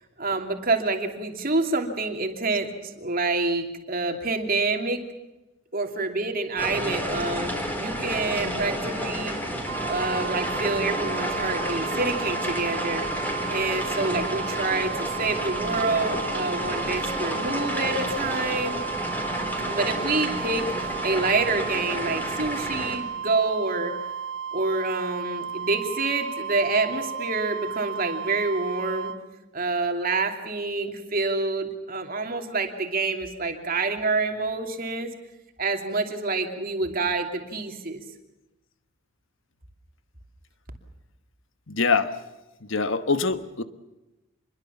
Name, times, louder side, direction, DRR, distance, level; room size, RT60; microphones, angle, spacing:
voice 1, 0.2-5.0 5.7-7.5 7.8-9.4 9.9-13.1 13.5-18.8 19.6-23.9 24.5-29.1 29.5-35.1 35.6-38.0, right 3 dB, 40° right, 4 dB, 2.9 m, -27 dB
sound 1, 6.6-23.0, equal, 10° left, 4.2 m, -30 dB
sound 2, 9.7-29.2, right 7 dB, 60° right, 1.2 m, -34 dB
voice 2, 41.7-42.2 42.6-43.6, left 4 dB, 60° left, 10 dB, 1.3 m, -24 dB
26.5 x 22.0 x 7.2 m, 1.0 s
head